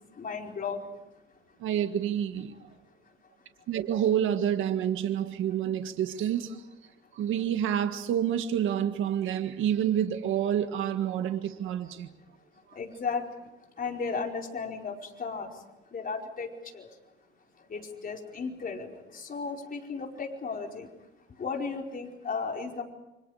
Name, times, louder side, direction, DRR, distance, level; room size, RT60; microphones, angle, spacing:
voice 1, 0.2-0.8 12.7-13.2 13.8-15.5 15.9-16.5 16.7-16.9 17.7-20.9 21.4-22.8, left 5 dB, 45° left, 2 dB, 4.7 m, -34 dB
voice 2, 1.6-2.6 3.7-6.6 7.1-12.1 12.7-12.8, right 10 dB, 85° right, 8 dB, 1.8 m, -28 dB
29.5 x 25.5 x 5.0 m, 0.96 s
cardioid pair, 90°, 20 cm